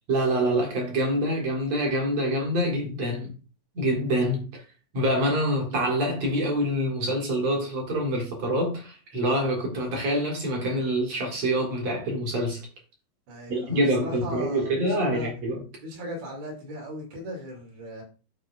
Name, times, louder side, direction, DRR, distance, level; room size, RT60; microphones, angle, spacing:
voice 1, 0.1-3.3 3.7-4.6 4.9-12.7 13.5-15.6, equal, 50° right, 2.2 m, -26 dB
voice 2, 13.3-15.3 15.8-18.0, equal, 80° right, 4.9 m, -38 dB
12.0 x 4.7 x 2.6 m
omnidirectional pair, 5.0 m